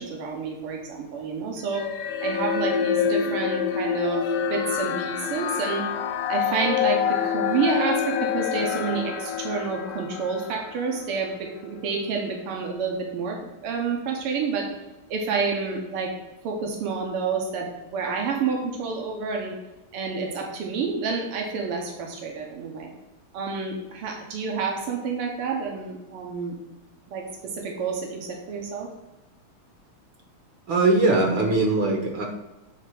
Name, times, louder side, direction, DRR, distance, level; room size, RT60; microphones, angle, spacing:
voice 1, 0.0-1.9 2.2-5.8 6.3-14.7 15.1-16.1 16.4-19.6 19.9-22.9 23.3-26.6 27.1-27.2 27.5-28.9, right 5 dB, 85° right, 1 dB, 2.0 m, -29 dB
sound 1, 1.7-11.2, left 8 dB, 90° left, 1.5 m, -27 dB
voice 2, 30.7-32.3, right 2 dB, 65° right, 2 dB, 1.6 m, -21 dB
8.0 x 3.4 x 5.9 m, 1.0 s
omnidirectional pair, 2.4 m